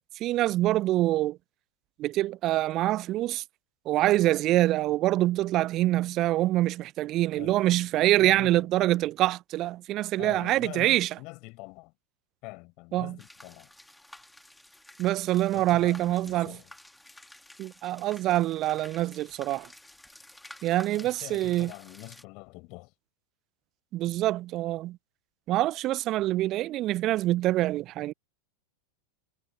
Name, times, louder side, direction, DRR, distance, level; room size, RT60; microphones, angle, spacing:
voice 1, 0.2-1.4 2.0-3.4 3.9-11.1 12.9-13.2 15.0-16.6 17.6-19.7 20.6-21.7 23.9-25.0 25.5-28.1, right 15 dB, 35° right, 0.6 m, -25 dB
voice 2, 8.2-8.7 10.2-11.9 12.4-13.7 15.5-16.7 20.9-22.9, left 27 dB, 45° left, 5.5 m, -44 dB
sound 1, 13.2-22.2, left 1 dB, 5° left, 2.8 m, -51 dB
figure-of-eight pair, 90°, 0 cm